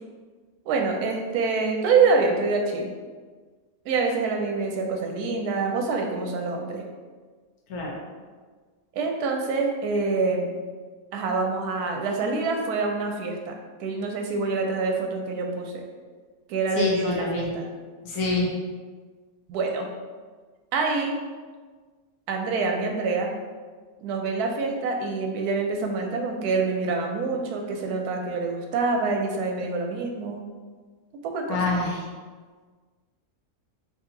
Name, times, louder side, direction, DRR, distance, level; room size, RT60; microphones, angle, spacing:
voice 1, 0.7-2.9 3.8-6.8 8.9-10.6 11.1-15.8 16.5-17.7 19.5-19.9 20.7-21.2 22.3-23.3 24.0-30.4 31.2-31.8, right 4 dB, 80° right, 2 dB, 1.1 m, -26 dB
voice 2, 16.8-17.5 18.0-18.5 31.5-32.0, left 2 dB, 75° left, -2 dB, 1.3 m, -26 dB
3.4 x 2.7 x 3.8 m, 1.5 s
omnidirectional pair, 1.6 m